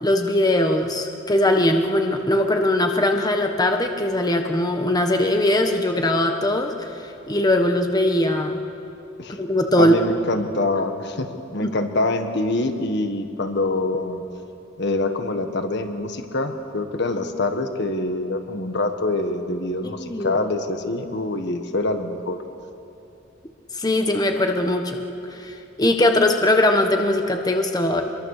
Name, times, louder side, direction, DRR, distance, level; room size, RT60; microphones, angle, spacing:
voice 1, 0.0-6.7 7.3-8.6 9.4-9.9 11.6-11.7 19.8-20.3 23.8-25.0 25.3-28.0, left 1 dB, 20° left, 4 dB, 1.2 m, -20 dB
voice 2, 9.8-11.3 11.5-14.2 14.8-22.4, left 2 dB, 60° left, 6 dB, 1.6 m, -25 dB
26.0 x 22.0 x 6.7 m, 2.8 s
head